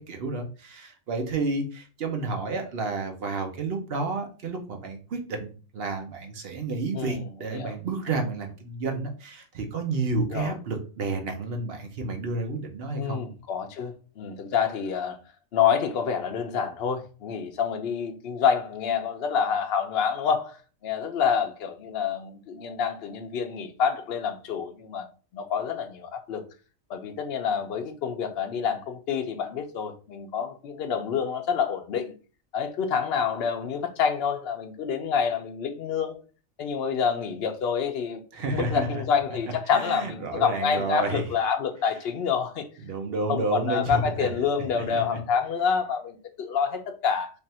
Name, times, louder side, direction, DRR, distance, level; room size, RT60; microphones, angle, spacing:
voice 1, 0.0-13.2 38.3-38.9 39.7-41.2 42.8-44.3 44.7-45.0, right 3 dB, 55° right, 0.9 m, -30 dB
voice 2, 6.9-7.8 10.3-10.5 13.0-15.2 15.5-20.6 20.8-25.1 25.3-26.5 26.9-32.1 32.5-36.2 36.6-42.7 43.3-47.3, left 7 dB, 55° left, 0.8 m, -27 dB
3.4 x 2.5 x 4.2 m
omnidirectional pair, 1.4 m